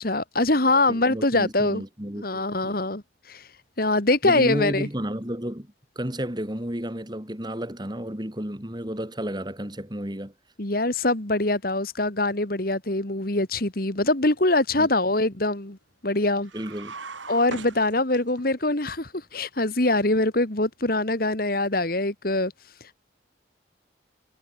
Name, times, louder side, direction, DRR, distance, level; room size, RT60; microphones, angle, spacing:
voice 1, 0.0-1.8 2.2-3.5 3.8-4.9 10.6-15.8 16.0-16.5 17.3-22.5 22.8-22.9, left 2 dB, 50° left, 2.2 m, -23 dB
voice 2, 0.9-2.8 4.2-10.3 14.8-14.9 16.5-16.9, equal, 20° right, 2.7 m, -32 dB
sound 1, 16.4-18.5, right 4 dB, 80° right, 7.3 m, -40 dB
head